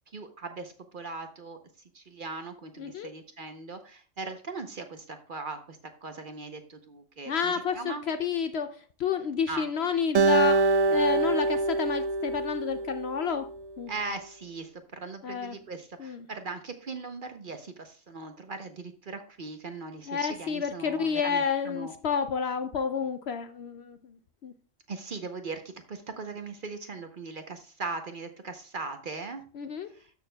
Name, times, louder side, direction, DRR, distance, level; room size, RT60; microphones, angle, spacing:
voice 1, 0.1-1.6 1.9-8.0 9.5-9.7 13.9-21.9 24.9-29.4 29.9-30.1, right 4 dB, 45° right, 0.8 m, -39 dB
voice 2, 2.8-3.1 7.3-13.5 13.8-13.9 15.2-15.6 16.0-16.3 20.1-24.1 24.4-24.5 29.5-29.9, left 6 dB, 65° left, 0.7 m, -30 dB
Acoustic guitar, 10.1-13.5, right 3 dB, 75° right, 0.3 m, -25 dB
13.0 x 6.5 x 2.2 m
omnidirectional pair, 1.4 m